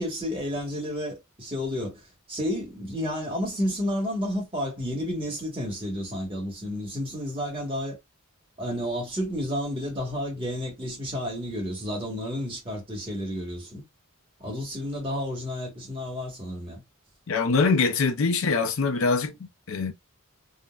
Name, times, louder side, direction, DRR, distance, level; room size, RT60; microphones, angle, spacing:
voice 1, 0.0-2.0 2.3-8.0 8.6-13.8 14.4-16.8, equal, 25° right, 1.1 m, -31 dB
voice 2, 17.3-19.9, left 4 dB, 65° left, 0.5 m, -24 dB
3.7 x 2.1 x 2.2 m
head